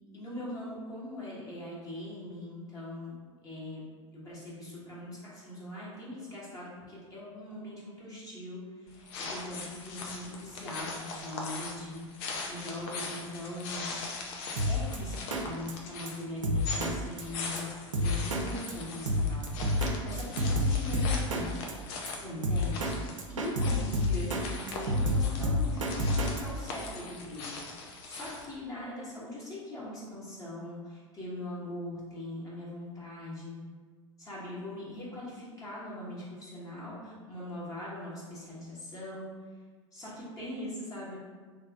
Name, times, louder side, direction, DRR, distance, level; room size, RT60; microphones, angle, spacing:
voice 1, 0.1-3.1 3.4-3.8 4.1-14.0 14.7-15.1 15.4-21.7 22.1-22.9 23.3-27.5 27.7-33.6 34.2-39.3 39.9-41.2, left 1 dB, 20° left, -8 dB, 1.3 m, -41 dB
Footsteps in the forest, 8.9-28.6, left 3 dB, 50° left, 0.7 m, -41 dB
Drum kit, 14.6-15.0 15.3-15.4 15.7-15.8 16.1-16.2 16.4-16.9 17.2-17.3 17.6-17.7 17.9-18.4 18.7-18.8 19.1-19.9 20.2-21.4 21.7-21.8 22.1-22.2 22.4-22.9 23.2-24.4 24.7-26.4, left 1 dB, 75° right, 0.6 m, -28 dB
3.3 x 2.9 x 3.6 m, 1.4 s
figure-of-eight pair, 85°, 17 cm